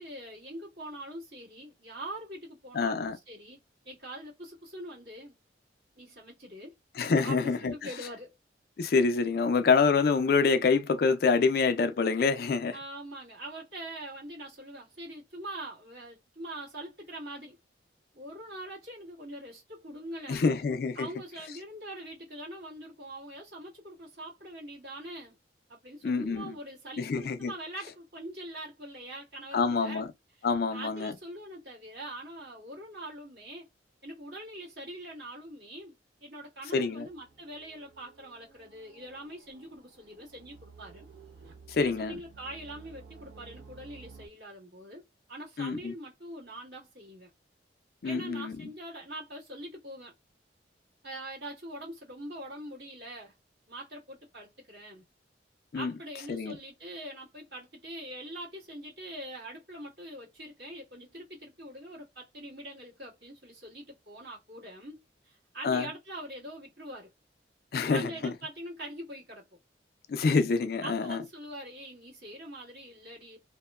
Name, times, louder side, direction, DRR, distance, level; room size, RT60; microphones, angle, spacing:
voice 1, 0.0-5.3 5.9-6.7 7.2-8.3 12.7-17.6 18.1-20.5 20.9-25.4 25.7-30.1 30.4-33.7 34.0-35.9 36.2-41.1 41.8-45.0 45.3-47.3 48.0-50.1 51.0-53.3 53.7-55.0 55.7-67.1 67.9-69.5 70.8-73.4, right 1 dB, 60° right, 1.5 m, -43 dB
voice 2, 2.7-3.2 7.0-7.7 8.8-12.8 20.3-21.1 26.0-26.5 27.0-27.5 29.5-30.1 30.4-31.1 36.7-37.1 41.7-42.2 45.6-45.9 48.0-48.6 55.7-55.9 56.3-56.6 65.6-65.8 67.7-68.3 70.1-71.2, left 4 dB, 55° left, 0.3 m, -26 dB
sound 1, 37.0-44.3, right 5 dB, 75° right, 0.7 m, -53 dB
2.8 x 2.1 x 2.2 m
head